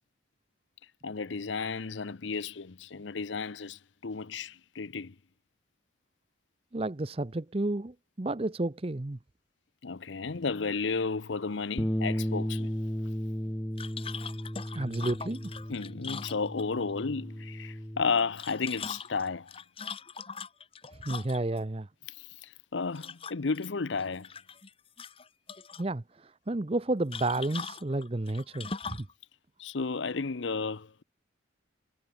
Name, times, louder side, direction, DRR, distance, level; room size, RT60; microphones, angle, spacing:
voice 1, 1.0-5.1 9.8-12.7 15.7-19.5 22.1-24.3 29.6-31.0, left 4 dB, 75° left, 0.8 m, -33 dB
voice 2, 6.7-9.2 14.7-15.5 20.9-21.9 25.8-29.1, right 2 dB, 30° right, 0.7 m, -31 dB
Bass guitar, 11.8-18.0, equal, 10° left, 1.6 m, -34 dB
sound 1, 13.8-16.9 18.2-21.6 23.0-23.7 24.0-24.7 25.0-25.9 27.1-29.1, left 5 dB, 30° left, 1.1 m, -41 dB
head